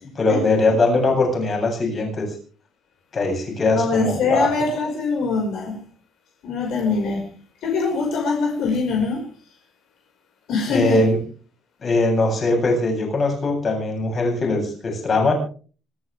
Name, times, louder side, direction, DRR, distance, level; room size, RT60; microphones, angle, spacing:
voice 1, 0.1-2.3 3.1-4.5 10.7-11.2 11.8-15.3, left 2 dB, 30° left, 2 dB, 7.9 m, -21 dB
voice 2, 3.7-5.8 6.4-7.3 7.6-9.3 10.5-11.0, left 4 dB, 60° left, 2 dB, 5.4 m, -23 dB
25.5 x 12.5 x 3.5 m, 0.40 s
cardioid pair, 170°, 0 cm